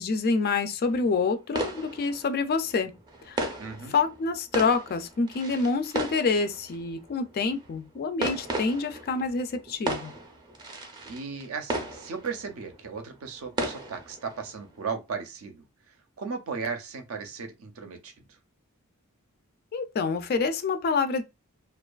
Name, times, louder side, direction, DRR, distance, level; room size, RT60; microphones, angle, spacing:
voice 1, 0.0-2.9 3.3-3.6 3.9-10.1 19.7-21.2, left 4 dB, 45° left, 0.3 m, -27 dB
sound 1, 0.8-14.9, right 2 dB, 20° right, 0.5 m, -36 dB
voice 2, 3.6-4.0 11.1-15.6 16.2-18.3, right 5 dB, 70° right, 0.5 m, -36 dB
2.5 x 2.3 x 2.2 m
head